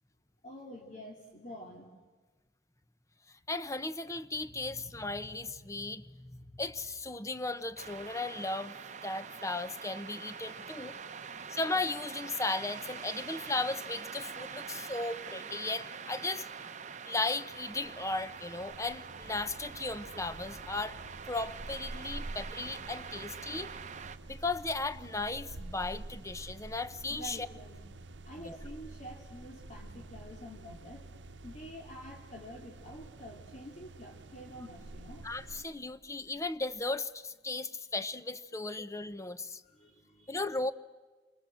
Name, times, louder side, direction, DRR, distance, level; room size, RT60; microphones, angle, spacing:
voice 1, 0.4-1.9 10.4-11.4 20.0-20.1 27.1-27.8 28.2-31.1 31.4-35.3 39.6-40.4, equal, 40° left, 0 dB, 3.0 m, -48 dB
voice 2, 3.5-8.7 9.0-11.0 11.5-16.5 17.1-21.0 21.3-23.7 24.3-27.5 28.4-28.6 35.2-39.6 40.3-40.7, left 3 dB, 15° left, 13 dB, 0.9 m, -36 dB
sound 1, 7.8-24.2, right 6 dB, 40° right, 0.9 m, -45 dB
sound 2, 17.4-35.7, right 2 dB, 90° right, 0.8 m, -49 dB
sound 3, 35.8-37.0, equal, 85° left, 1.9 m, -58 dB
28.5 x 25.0 x 7.8 m, 1.3 s
head